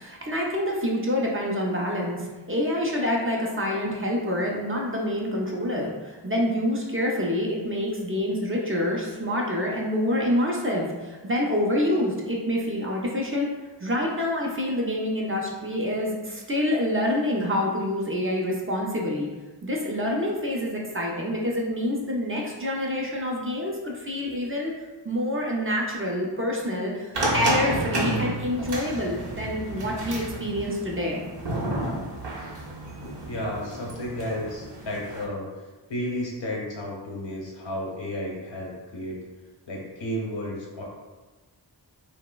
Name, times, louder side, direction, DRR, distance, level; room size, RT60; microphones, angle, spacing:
voice 1, 0.0-13.5 13.8-19.3 19.6-24.7 25.0-31.2, left 1 dB, 30° right, -2 dB, 0.4 m, -27 dB
sound 1, 27.1-35.2, right 1 dB, 70° right, 0.6 m, -31 dB
voice 2, 33.3-35.5 35.9-39.2 39.7-40.8, left 1 dB, 80° left, -3 dB, 0.7 m, -32 dB
3.0 x 2.0 x 2.2 m, 1.2 s
wide cardioid pair, 65°, 44 cm